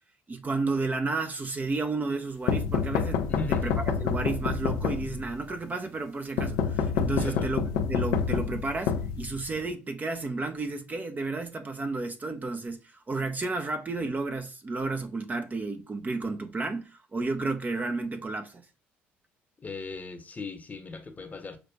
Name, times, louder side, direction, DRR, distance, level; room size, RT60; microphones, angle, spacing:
voice 1, 0.3-3.2 3.5-3.7 4.0-7.6 7.9-18.6, right 3 dB, 30° right, 0.7 m, -32 dB
sound 1, 2.5-5.4 6.4-9.7, left 6 dB, 70° left, 0.5 m, -28 dB
voice 2, 3.3-3.7 7.2-7.5 19.6-21.6, left 3 dB, 25° left, 0.9 m, -38 dB
5.8 x 2.5 x 2.2 m
hypercardioid pair, 55°, 6 cm